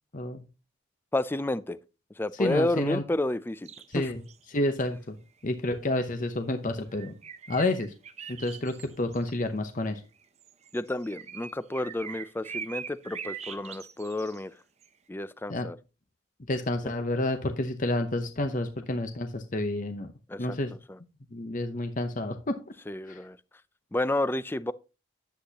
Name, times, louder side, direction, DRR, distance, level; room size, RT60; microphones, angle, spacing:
voice 1, 0.1-0.5 2.3-3.0 3.9-4.2 4.5-5.2 5.4-7.1 7.5-7.9 8.3-10.0 15.5-15.7 16.5-20.1 20.4-20.7 21.3-22.6 23.1-23.2, left 1 dB, 40° left, 0.8 m, -29 dB
voice 2, 1.1-1.8 2.2-4.1 10.7-14.5 15.1-15.8 20.3-20.6 20.9-21.0 22.9-23.4 23.9-24.7, left 1 dB, 10° left, 0.3 m, -30 dB
sound 1, 3.6-4.0 4.3-4.4 4.8-5.0 6.9-9.3 10.2-14.4 14.8-14.9, right 7 dB, 30° right, 0.6 m, -42 dB
10.5 x 8.1 x 2.9 m
head